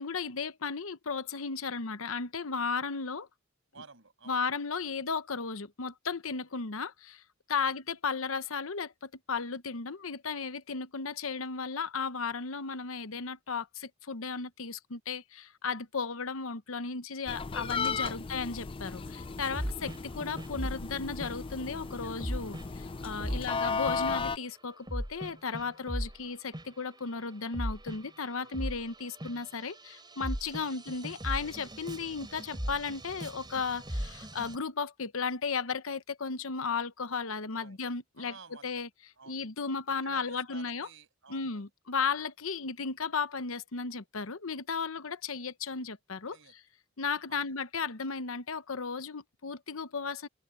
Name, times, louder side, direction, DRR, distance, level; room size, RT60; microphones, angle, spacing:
voice 1, 0.0-3.3 4.3-7.2 7.5-38.3 38.6-38.9 39.3-40.9 41.3-46.4 47.0-50.3, left 5 dB, 80° left, 1.0 m, -35 dB
voice 2, 3.7-4.4 7.6-7.8 18.0-18.3 22.0-22.5 23.2-23.6 28.3-28.5 30.5-30.8 37.6-37.8 38.2-38.8 39.1-39.4 39.9-41.7 46.3-46.6 47.3-47.6, right 4 dB, 70° right, 6.9 m, -53 dB
sound 1, 17.3-24.4, left 5 dB, 25° left, 0.4 m, -35 dB
sound 2, 19.5-20.9 21.2-21.4 22.2-22.7 23.2-24.1 24.9-26.2 26.5-27.0 27.3-34.6, equal, 20° right, 3.7 m, -38 dB
head